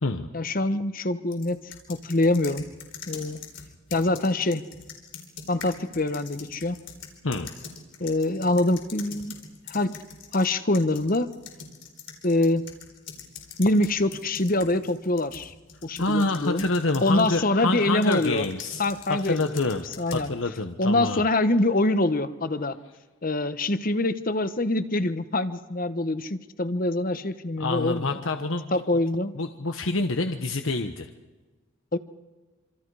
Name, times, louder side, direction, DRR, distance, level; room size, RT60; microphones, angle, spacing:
voice 1, 0.3-2.6 3.1-3.4 3.9-4.6 5.5-6.8 8.0-9.3 9.7-10.0 10.3-11.4 12.2-12.7 13.6-15.5 15.8-16.6 17.0-18.4 18.8-20.3 20.8-22.8 23.2-28.2 28.7-29.3 31.9-32.0, left 2 dB, 45° left, 11 dB, 1.2 m, -25 dB
sound 1, 1.3-10.5 10.7-17.4 18.0-20.3, left 6 dB, 60° left, 4.4 m, -43 dB
voice 2, 16.0-18.8 19.1-19.9 20.1-21.3 27.6-28.7 29.3-31.1, left 2 dB, 80° left, 6 dB, 1.2 m, -27 dB
27.0 x 26.5 x 4.9 m, 1.2 s
head